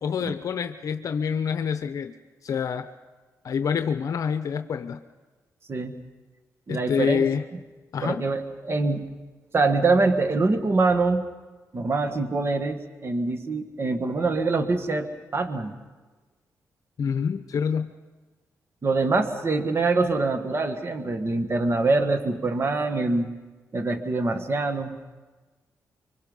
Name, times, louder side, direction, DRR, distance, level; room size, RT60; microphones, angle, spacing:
voice 1, 0.0-2.1 2.4-2.9 3.4-5.0 6.7-7.4 7.9-8.3 17.0-17.9, left 7 dB, 65° left, 9 dB, 0.8 m, -27 dB
voice 2, 6.7-7.3 8.0-9.1 9.5-11.3 11.7-15.7 18.8-23.3 23.7-25.0, right 3 dB, 40° right, 8 dB, 1.7 m, -24 dB
25.0 x 24.5 x 5.5 m, 1.3 s
cardioid pair, 80°, 6 cm